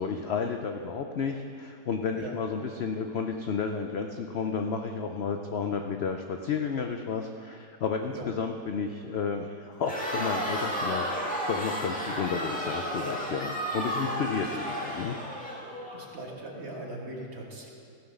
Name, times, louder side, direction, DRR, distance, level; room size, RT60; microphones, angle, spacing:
voice 1, 0.0-15.2, left 5 dB, 75° left, 5 dB, 0.5 m, -32 dB
Crowd, 9.8-16.0, equal, 5° left, 1.6 m, -32 dB
voice 2, 15.9-17.7, right 2 dB, 40° right, -1 dB, 1.7 m, -40 dB
15.5 x 5.8 x 6.5 m, 2.4 s
omnidirectional pair, 1.8 m